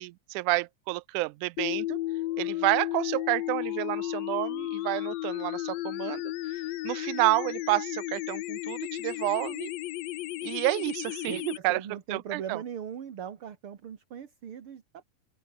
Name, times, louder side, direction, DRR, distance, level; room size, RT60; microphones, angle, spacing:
voice 1, 0.0-2.0 2.4-6.3 6.8-9.7 10.4-11.8 12.1-12.6, right 21 dB, 85° right, 2.0 m, -29 dB
sound 1, 1.6-11.6, left 16 dB, 75° left, 1.7 m, -33 dB
voice 2, 11.3-15.0, right 8 dB, 50° right, 2.4 m, -39 dB
open air
omnidirectional pair, 3.5 m